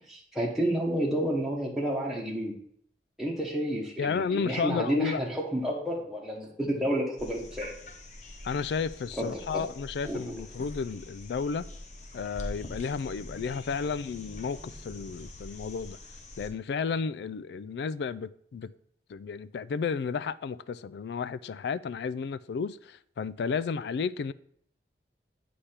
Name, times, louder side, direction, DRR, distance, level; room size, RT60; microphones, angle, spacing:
voice 1, 0.1-2.5 3.2-7.7 9.2-9.6 10.1-10.3, equal, ahead, 1.1 m, -30 dB
voice 2, 4.0-5.2 8.4-11.7 12.1-16.0 16.4-18.7 19.1-24.3, left 5 dB, 75° left, 0.3 m, -32 dB
sound 1, 7.2-16.5 18.6-18.7, left 1 dB, 40° left, 0.7 m, -44 dB
8.4 x 3.4 x 5.7 m
head